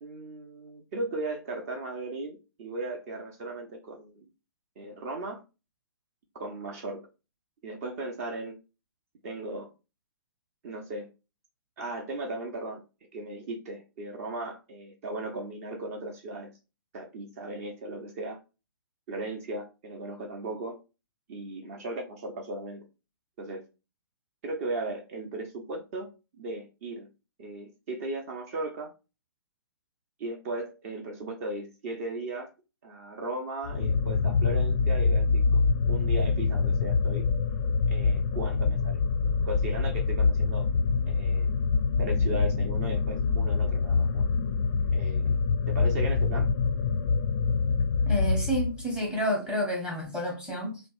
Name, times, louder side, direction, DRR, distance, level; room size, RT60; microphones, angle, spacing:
voice 1, 0.0-4.2 4.8-5.4 6.3-7.0 7.6-8.6 9.2-9.7 10.6-11.1 11.8-12.8 13.1-16.5 16.9-18.4 19.1-20.8 21.3-22.8 23.4-23.7 24.4-26.1 26.4-27.1 27.4-28.9 30.2-32.5 32.8-37.2 37.9-39.0 39.5-40.7 41.1-41.5 42.0-44.2 44.9-45.4 45.7-46.5, right 2 dB, 40° right, 0.7 m, -36 dB
sound 1, 33.6-49.0, left 5 dB, 35° left, 0.4 m, -25 dB
voice 2, 48.1-50.8, equal, 5° right, 0.8 m, -30 dB
2.9 x 2.1 x 2.9 m
figure-of-eight pair, 125°, 13 cm